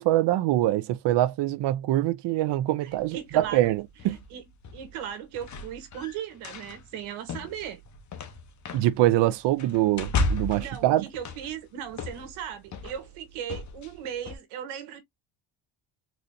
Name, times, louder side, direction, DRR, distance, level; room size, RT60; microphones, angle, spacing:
voice 1, 0.0-4.2 8.7-11.0, right 14 dB, 60° right, 0.5 m, -24 dB
voice 2, 2.8-3.7 4.1-7.8 10.5-15.0, right 9 dB, 90° right, 1.4 m, -37 dB
sound 1, 2.9-14.4, left 3 dB, 35° left, 0.9 m, -35 dB
4.1 x 3.1 x 2.6 m
cardioid pair, 125°, 48 cm